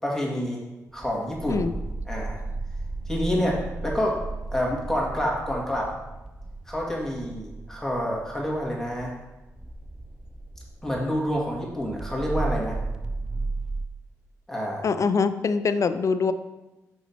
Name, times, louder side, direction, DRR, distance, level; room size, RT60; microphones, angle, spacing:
voice 1, 0.0-0.6 0.9-1.7 2.1-2.4 3.1-4.2 4.5-5.9 6.7-9.1 10.8-12.8 14.5-14.9, equal, 5° left, -3 dB, 2.3 m, -28 dB
sound 1, 0.9-13.8, right 3 dB, 10° right, 0.5 m, -35 dB
voice 2, 14.8-16.3, left 5 dB, 50° left, 12 dB, 0.4 m, -23 dB
5.5 x 5.5 x 4.5 m, 1.0 s
supercardioid pair, 50°, 7 cm